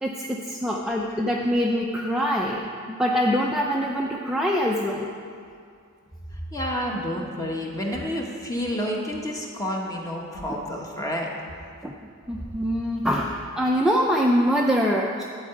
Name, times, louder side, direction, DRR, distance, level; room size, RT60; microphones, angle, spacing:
voice 1, 0.0-2.7 3.0-5.1 10.5-10.6 11.8-11.9 12.3-15.2, equal, ahead, -2 dB, 0.5 m, -24 dB
voice 2, 6.3-11.3 11.5-11.7, equal, 15° left, -1 dB, 1.2 m, -30 dB
12.0 x 4.7 x 8.0 m, 2.3 s
head